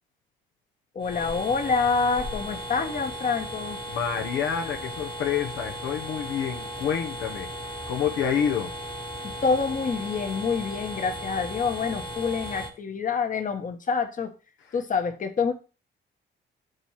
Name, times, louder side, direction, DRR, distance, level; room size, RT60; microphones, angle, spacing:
voice 1, 0.9-3.8 9.4-14.3 14.7-15.5, left 5 dB, 40° left, 6 dB, 1.2 m, -27 dB
sound 1, 1.0-12.7, equal, 25° left, 1.3 m, -36 dB
voice 2, 3.9-7.5 7.9-8.7, left 8 dB, 80° left, 4 dB, 1.0 m, -28 dB
8.0 x 3.1 x 5.7 m, 0.33 s
cardioid pair, 90°, 20 cm